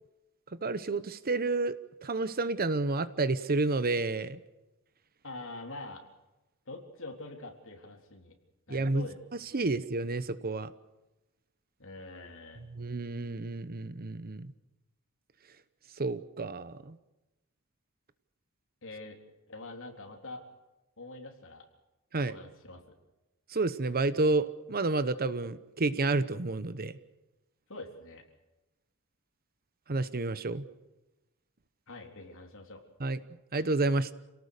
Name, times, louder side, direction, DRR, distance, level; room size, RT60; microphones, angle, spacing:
voice 1, 0.6-1.7 2.0-4.4 8.7-9.1 9.5-10.7 12.7-14.5 16.0-17.0 22.1-22.4 23.5-26.9 29.9-30.6 33.0-33.2 33.5-34.1, right 3 dB, 45° right, 14 dB, 1.0 m, -30 dB
voice 2, 5.2-6.0 6.7-8.4 8.7-9.2 9.6-9.8 11.8-12.7 18.8-19.2 19.5-20.4 21.0-21.7 22.3-22.8 27.7-28.2 31.9-32.8, left 2 dB, 65° left, 2 dB, 3.8 m, -45 dB
28.0 x 18.0 x 6.7 m, 1.0 s
head